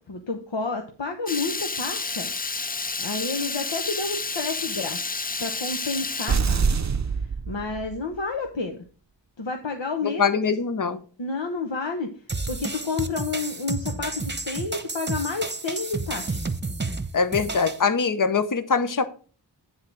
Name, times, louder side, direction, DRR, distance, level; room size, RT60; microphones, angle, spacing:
voice 1, 0.1-2.3 3.0-6.9 7.5-8.8 9.4-10.4 11.2-12.1 12.5-16.4, left 3 dB, 80° left, 1.0 m, -30 dB
Water tap faucet / Liquid, 1.3-6.4, left 4 dB, 20° left, 0.4 m, -30 dB
sound 1, 6.3-8.2, right 5 dB, 40° right, 0.6 m, -25 dB
voice 2, 10.0-11.0 17.1-19.0, left 5 dB, 45° left, 0.8 m, -23 dB
sound 2, 12.3-17.8, right 3 dB, 25° right, 0.9 m, -31 dB
9.7 x 3.8 x 6.0 m
wide cardioid pair, 50°, 44 cm